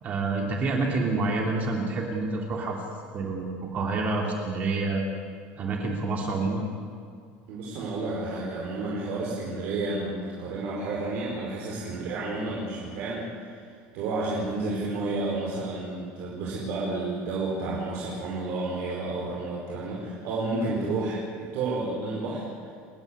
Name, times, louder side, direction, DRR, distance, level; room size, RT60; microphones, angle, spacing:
voice 1, 0.0-2.8 3.1-5.0 5.6-6.6, right 3 dB, 35° right, 1 dB, 2.8 m, -28 dB
voice 2, 7.5-13.6 13.9-22.4, right 2 dB, 60° right, -5 dB, 4.9 m, -31 dB
30.0 x 10.5 x 9.7 m, 2.2 s
cardioid pair, 165°, 5 cm